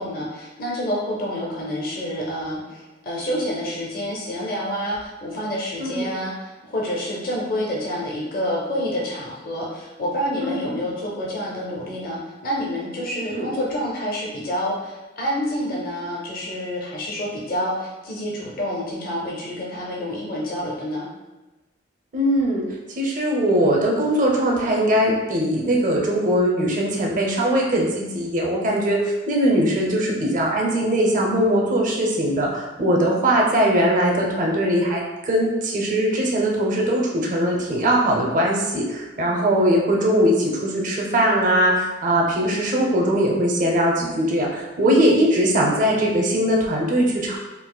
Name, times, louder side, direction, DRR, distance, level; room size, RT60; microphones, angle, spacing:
voice 1, 0.0-21.1, equal, 50° left, -4 dB, 0.6 m, -28 dB
voice 2, 5.8-6.1 10.4-10.8 13.3-13.5 22.1-22.6 23.0-47.4, equal, 45° right, -1 dB, 0.6 m, -20 dB
3.9 x 2.4 x 2.2 m, 1.1 s
head